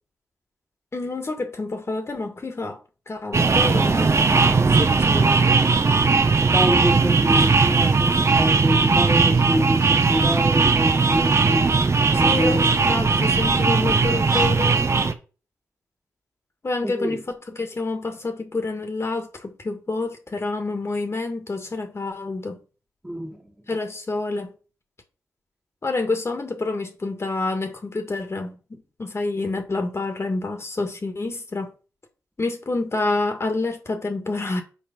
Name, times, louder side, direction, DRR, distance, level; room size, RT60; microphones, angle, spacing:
voice 1, 0.9-2.8 3.1-5.6 12.1-14.9 16.6-17.2 17.5-22.6 23.7-24.5 25.8-31.7 32.4-34.6, left 3 dB, 40° left, 2.2 m, -28 dB
sound 1, 3.3-15.1, right 4 dB, 45° right, 1.0 m, -18 dB
voice 2, 6.4-11.8 12.2-12.7 14.3-14.5 16.8-17.2 23.0-23.5, equal, 10° right, 2.5 m, -26 dB
6.7 x 4.6 x 5.5 m
supercardioid pair, 45°, 7 cm